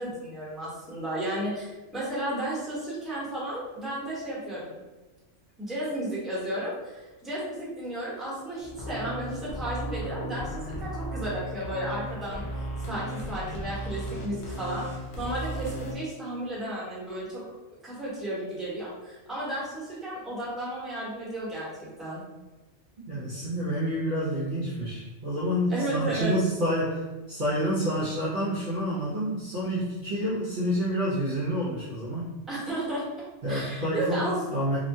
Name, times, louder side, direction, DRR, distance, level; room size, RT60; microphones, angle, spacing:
voice 1, 0.0-4.8 5.6-12.4 12.9-14.8 15.2-17.4 17.8-22.2 25.7-26.3 32.5-33.1 33.5-34.4, right 1 dB, ahead, -9 dB, 0.8 m, -33 dB
sound 1, 8.6-15.9, equal, 65° left, 0.8 m, -35 dB
voice 2, 23.1-32.4 33.4-34.8, equal, 50° right, -9 dB, 0.6 m, -28 dB
3.0 x 2.1 x 2.6 m, 1.2 s
omnidirectional pair, 1.3 m